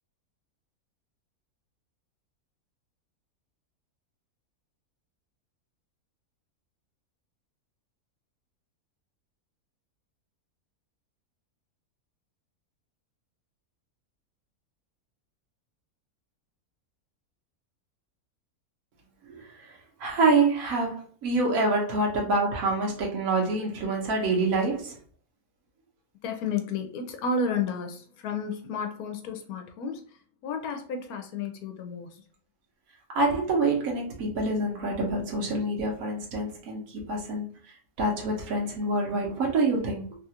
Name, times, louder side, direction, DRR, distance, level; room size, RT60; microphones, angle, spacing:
voice 1, 20.0-25.0 33.1-37.5 38.0-40.2, right 2 dB, 70° right, 1.4 m, -26 dB
voice 2, 26.2-32.2, left 4 dB, 80° left, 1.1 m, -32 dB
3.2 x 2.4 x 2.8 m
omnidirectional pair, 1.6 m